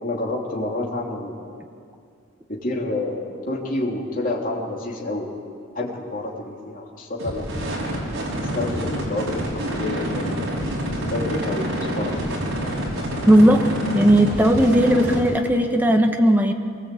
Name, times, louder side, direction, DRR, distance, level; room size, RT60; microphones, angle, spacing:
voice 1, 0.0-1.5 2.5-5.3 5.7-7.7 8.6-10.5 11.0-12.2, left 2 dB, 40° left, -2 dB, 3.3 m, -28 dB
sound 1, 7.2-15.4, equal, 75° right, 5.5 m, -27 dB
voice 2, 13.2-13.6 13.9-16.5, equal, 10° right, 3 dB, 1.5 m, -16 dB
24.5 x 18.5 x 8.6 m, 2.3 s
head